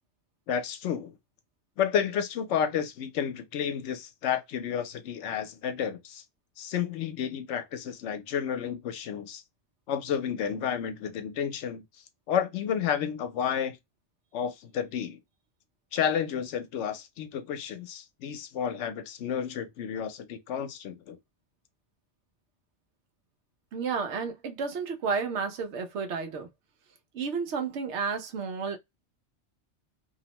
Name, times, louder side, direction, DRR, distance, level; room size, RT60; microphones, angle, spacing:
voice 1, 0.5-1.2 1.8-6.2 6.6-9.4 9.9-11.8 12.3-13.8 14.3-15.2 15.9-21.2, left 8 dB, 80° left, 0.9 m, -31 dB
voice 2, 23.7-26.5 27.1-28.8, right 5 dB, 75° right, 1.0 m, -31 dB
2.7 x 2.1 x 2.8 m
omnidirectional pair, 1.2 m